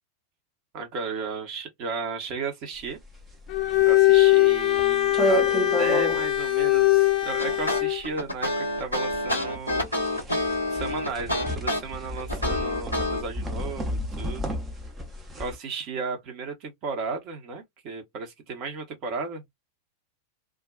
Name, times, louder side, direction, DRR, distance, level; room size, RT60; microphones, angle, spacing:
voice 1, 0.7-3.0 3.8-5.4 5.8-9.8 10.7-14.6 15.4-19.4, right 4 dB, 40° right, 0.9 m, -34 dB
sound 1, 2.8-15.6, right 1 dB, 15° right, 0.7 m, -32 dB
Bowed string instrument, 3.5-8.0, left 16 dB, 35° left, 0.4 m, -21 dB
sound 2, 7.4-13.2, left 1 dB, 90° right, 1.2 m, -28 dB
2.4 x 2.2 x 2.4 m
figure-of-eight pair, 90°, 0 cm